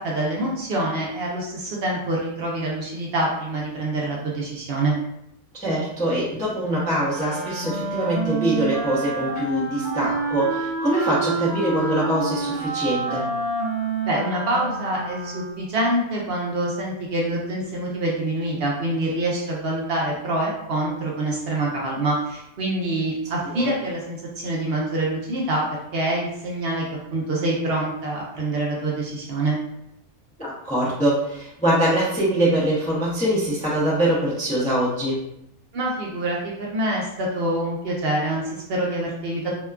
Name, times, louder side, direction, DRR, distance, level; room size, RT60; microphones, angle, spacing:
voice 1, 0.0-4.9 14.0-25.6 25.9-26.8 27.1-29.6 35.7-39.5, right 1 dB, 60° right, -3 dB, 0.7 m, -26 dB
voice 2, 5.6-13.3 23.5-23.7 30.4-35.2, right 1 dB, 10° left, -8 dB, 0.3 m, -23 dB
Wind instrument woodwind instrument, 7.0-15.7, right 3 dB, 80° right, 1.0 m, -28 dB
2.8 x 2.3 x 2.2 m, 0.82 s
omnidirectional pair, 1.4 m